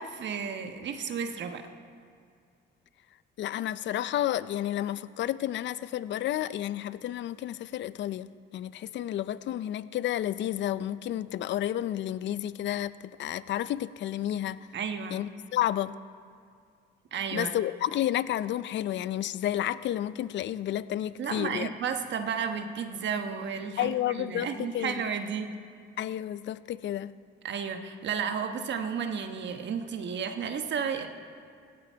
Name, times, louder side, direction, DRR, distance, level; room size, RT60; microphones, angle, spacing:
voice 1, 0.0-1.7 14.7-15.2 17.1-17.5 21.2-25.5 27.4-31.1, right 6 dB, 65° right, 7 dB, 1.2 m, -33 dB
voice 2, 3.4-14.7 15.1-16.0 17.3-21.7 23.8-25.0 26.0-27.1, left 12 dB, 65° left, 16 dB, 0.5 m, -31 dB
16.5 x 16.5 x 4.6 m, 2.3 s
cardioid pair, 90°, 20 cm